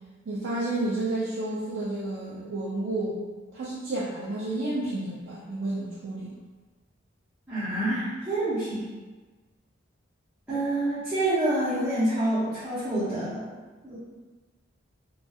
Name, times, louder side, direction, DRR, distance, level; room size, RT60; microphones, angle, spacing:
voice 1, 0.3-3.2 3.5-6.3, right 2 dB, 65° right, -7 dB, 0.4 m, -31 dB
voice 2, 7.5-8.9 10.5-13.5 13.8-14.0, right 1 dB, 5° right, -16 dB, 0.7 m, -27 dB
2.7 x 2.3 x 2.3 m, 1.3 s
head